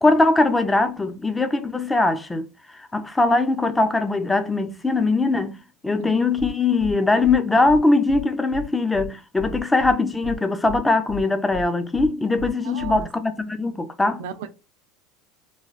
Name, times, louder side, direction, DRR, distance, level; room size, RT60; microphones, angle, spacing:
voice 1, 0.0-2.5 2.7-5.6 5.8-14.2, left 3 dB, 10° left, 0.4 m, -21 dB
sound 1, 6.4-6.5 6.8-6.9 7.2-7.4 7.7-7.8 8.1-8.2 8.5-8.6 8.9-9.1 9.4-9.9 10.2-10.4 10.7-10.8 11.1-11.2 11.5-11.6 11.9-12.1 12.4-12.5 12.8-13.0, left 3 dB, 65° left, 0.6 m, -34 dB
voice 2, 12.6-13.1 14.2-14.5, right 8 dB, 85° right, 0.4 m, -34 dB
3.1 x 2.2 x 2.4 m
supercardioid pair, 115°, 0 cm